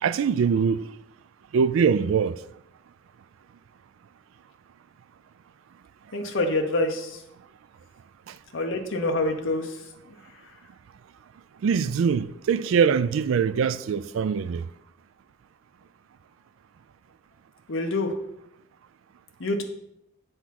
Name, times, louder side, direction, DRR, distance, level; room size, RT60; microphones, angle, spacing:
voice 1, 0.0-0.9 1.5-2.4 8.3-8.4 11.6-14.6, right 6 dB, 75° right, 0.3 m, -23 dB
voice 2, 6.1-7.2 8.5-9.8 10.1-10.6 17.7-18.1 19.4-19.6, left 2 dB, 65° left, 0.8 m, -27 dB
7.9 x 3.6 x 5.8 m
head